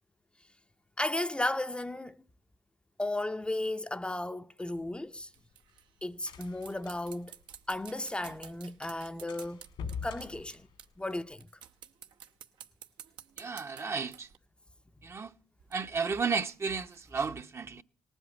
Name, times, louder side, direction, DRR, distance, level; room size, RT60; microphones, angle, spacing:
voice 1, 1.0-2.2 3.0-5.3 6.0-7.3 7.7-9.6 10.0-10.7 11.0-11.5, left 1 dB, 10° left, 0.6 m, -34 dB
sound 1, 4.8-8.2 8.5-8.6 8.9-9.0 9.3-11.3, left 6 dB, 80° left, 2.0 m, -45 dB
sound 2, 5.2-11.1 11.4-14.4 15.6-17.3, right 9 dB, 75° right, 0.8 m, -52 dB
voice 2, 13.4-14.3 15.0-15.3 15.7-17.8, right 5 dB, 35° right, 0.7 m, -33 dB
18.5 x 8.0 x 7.2 m
supercardioid pair, 75°, 8 cm